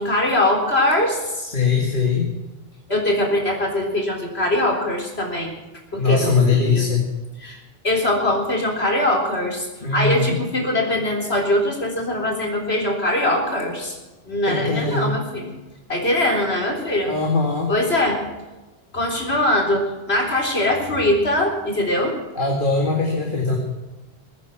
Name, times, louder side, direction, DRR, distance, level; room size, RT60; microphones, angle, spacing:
voice 1, 0.0-1.4 2.9-5.6 5.9-6.8 7.4-7.6 7.8-14.0 14.3-15.5 15.9-17.1 17.7-18.2 18.9-22.2, left 1 dB, 80° left, 1 dB, 4.1 m, -22 dB
voice 2, 1.4-2.3 6.0-7.0 9.8-10.4 14.5-15.1 17.1-17.7 22.3-23.6, left 4 dB, 55° left, 0 dB, 2.2 m, -21 dB
22.0 x 9.6 x 6.0 m, 1.1 s
omnidirectional pair, 1.1 m